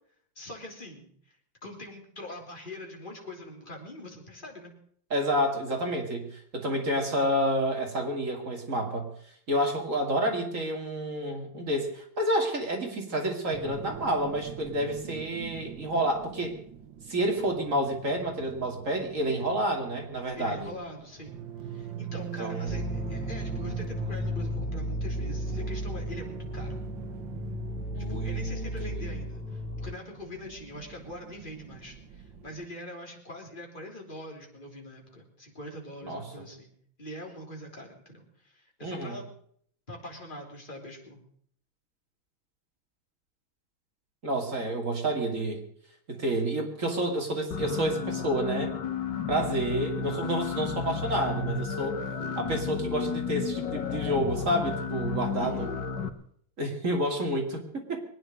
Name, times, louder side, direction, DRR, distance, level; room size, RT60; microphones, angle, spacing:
voice 1, 0.4-1.4 1.6-4.7 20.3-21.3 21.6-26.8 28.1-36.7 37.0-39.3 39.9-41.2 55.3-55.7, left 1 dB, 25° left, 0 dB, 3.5 m, -43 dB
voice 2, 5.1-9.1 9.5-16.6 17.1-20.7 22.4-22.8 27.9-29.2 36.0-36.4 38.8-39.2 44.2-45.6 46.1-48.7 49.3-52.0 52.4-55.7 56.6-58.0, right 1 dB, 40° right, 2 dB, 2.9 m, -29 dB
sound 1, 13.5-32.6, right 9 dB, 70° right, 2.0 m, -42 dB
sound 2, 22.7-29.9, left 1 dB, 5° left, 1.9 m, -34 dB
sound 3, 47.5-56.1, left 6 dB, 60° left, 1.7 m, -33 dB
23.0 x 9.6 x 6.4 m, 0.63 s
omnidirectional pair, 2.2 m